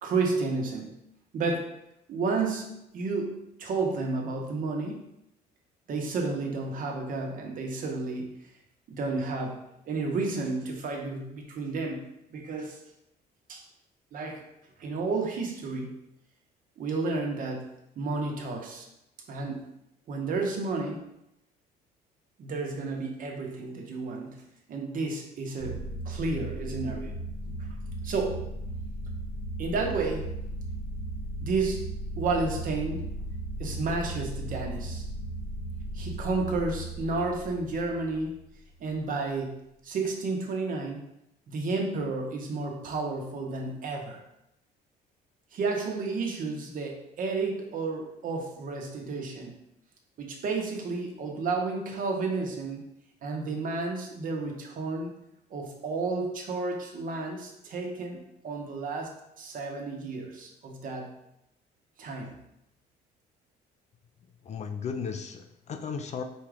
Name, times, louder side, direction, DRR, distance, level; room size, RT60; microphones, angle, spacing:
voice 1, 0.0-1.0 1.3-1.6 2.1-5.1 5.9-8.3 8.9-9.6 9.9-12.0 12.3-12.8 13.5-13.6 14.1-14.4 14.8-15.9 16.8-17.7 18.0-18.9 19.3-19.6 20.1-21.1 22.4-24.4 24.7-25.8 26.0-27.1 28.0-28.5 29.6-30.3 31.4-31.8 32.2-33.0 33.6-35.0 35.9-38.4 38.8-41.0 41.5-44.2 45.5-49.6 50.2-52.8 53.2-55.1 55.5-58.2 58.4-59.1 59.4-61.1 62.0-62.3, right 3 dB, 55° right, 1 dB, 1.0 m, -31 dB
sound 1, 25.6-38.5, right 1 dB, 65° left, 1.1 m, -36 dB
voice 2, 64.4-66.2, left 6 dB, 40° left, 6 dB, 0.4 m, -35 dB
4.4 x 2.4 x 4.8 m, 0.82 s
cardioid pair, 110°, 17 cm